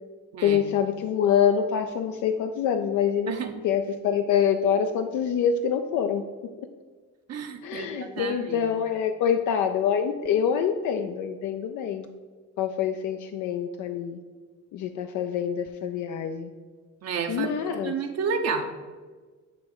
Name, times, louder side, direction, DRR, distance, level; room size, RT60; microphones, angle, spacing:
voice 1, 0.4-3.3 3.6-6.3 7.6-12.1 12.6-14.2 14.7-16.5 17.3-17.9, left 8 dB, 80° left, 6 dB, 0.5 m, -25 dB
voice 2, 7.3-8.7 17.0-17.5 17.8-18.7, right 5 dB, 60° right, 5 dB, 0.7 m, -30 dB
8.5 x 3.1 x 4.7 m, 1.4 s
cardioid pair, 90°, 30 cm